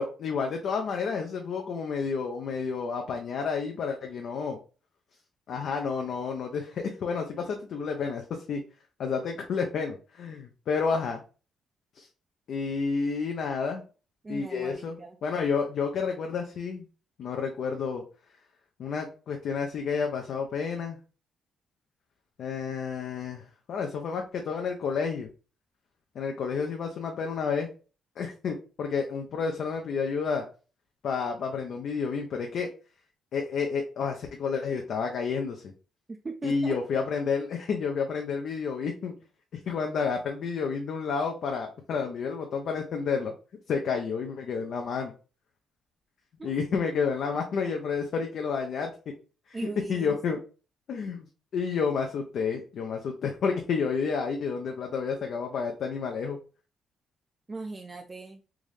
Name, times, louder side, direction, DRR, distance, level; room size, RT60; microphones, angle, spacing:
voice 1, 0.0-4.6 5.5-8.6 9.0-11.2 12.0-12.1 12.5-13.8 14.3-15.0 15.2-16.9 17.2-18.0 18.8-21.0 22.4-25.3 26.2-27.7 28.2-30.5 31.0-32.7 33.3-35.6 36.4-39.1 39.7-43.3 43.7-45.1 46.4-48.9 49.5-49.6 49.9-50.4 50.9-51.3 51.5-56.4, left 5 dB, 65° left, 3 dB, 0.5 m, -30 dB
voice 2, 14.2-15.2 36.1-36.8 46.4-46.5 49.5-50.2 57.5-58.4, right 3 dB, 25° right, 3 dB, 0.4 m, -38 dB
3.5 x 2.6 x 3.2 m, 0.35 s
cardioid pair, 90°, 0 cm